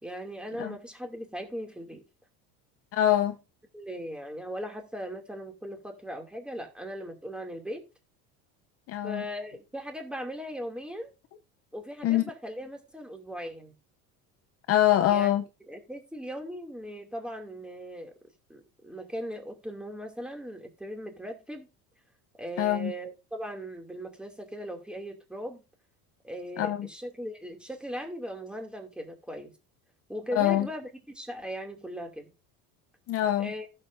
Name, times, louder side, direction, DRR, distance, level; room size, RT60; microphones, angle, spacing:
voice 1, 0.0-2.0 3.7-7.8 9.0-11.1 11.7-13.7 15.1-15.3 15.7-18.1 18.5-21.7 22.4-25.6 26.2-29.5 30.1-30.9 31.1-32.3 33.4-33.7, equal, 5° right, 2.6 m, -38 dB
voice 2, 2.9-3.4 8.9-9.2 12.0-12.2 14.7-15.4 22.6-22.9 26.6-26.9 30.3-30.7 33.1-33.5, left 12 dB, 40° left, 0.7 m, -24 dB
15.5 x 7.4 x 2.6 m
cardioid pair, 150°, 36 cm